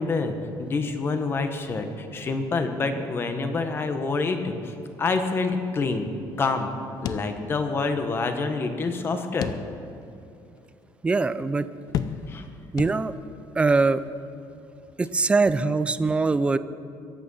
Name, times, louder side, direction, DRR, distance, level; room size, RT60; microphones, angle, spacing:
voice 1, 0.0-6.1 6.4-6.7 7.0-9.6 12.3-12.5, left 3 dB, 30° left, 7 dB, 1.2 m, -27 dB
sound 1, 7.0-7.9 8.2-8.3 9.4-10.1 10.6-10.7 11.9-12.5 12.8-13.4, left 8 dB, 50° left, 0.6 m, -32 dB
voice 2, 11.0-11.7 12.7-13.1 13.6-14.0 15.0-16.6, right 3 dB, 15° right, 14 dB, 0.4 m, -22 dB
22.5 x 9.0 x 5.6 m, 2.5 s
cardioid pair, 155°, 8 cm